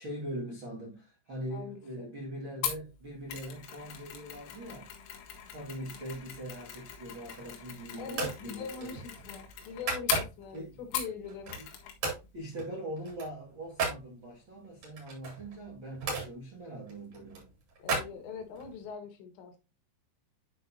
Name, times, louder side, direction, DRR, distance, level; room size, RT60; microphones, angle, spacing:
voice 1, 0.0-4.9 5.5-9.0 10.5-10.8 11.6-11.7 12.3-17.5, right 1 dB, 65° right, 1.2 m, -42 dB
voice 2, 1.5-2.1 8.0-11.5 17.8-19.6, left 5 dB, 65° left, 3.5 m, -42 dB
Mechanisms, 2.6-11.2 11.5-12.0 12.2-12.4, left 8 dB, 85° left, 4.3 m, -39 dB
sound 1, 7.2-7.7 8.1-8.4 8.8-10.6 11.0-11.7 12.0-12.3 12.6-14.0 14.8-16.3 16.9-18.7, right 4 dB, 45° right, 5.1 m, -36 dB
11.5 x 5.2 x 2.7 m
omnidirectional pair, 5.9 m